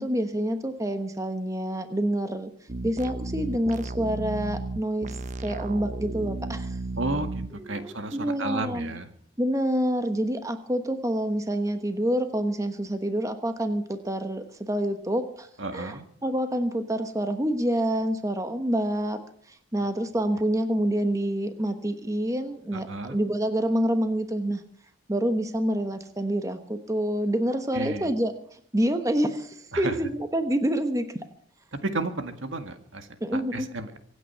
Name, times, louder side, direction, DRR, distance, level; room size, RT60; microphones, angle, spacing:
voice 1, 0.0-2.5 2.8-5.2 5.4-6.8 7.6-8.9 9.4-15.5 15.7-19.2 19.5-24.6 25.1-28.3 28.7-31.1 33.2-33.7, right 1 dB, 15° right, 8 dB, 1.1 m, -27 dB
sound 1, 2.7-7.5, right 2 dB, 35° right, 0.6 m, -33 dB
voice 2, 7.0-9.1 15.6-16.0 22.7-23.2 27.7-28.1 29.7-30.0 31.8-34.0, right 2 dB, 75° right, 8 dB, 1.8 m, -33 dB
25.0 x 9.2 x 5.7 m, 0.63 s
head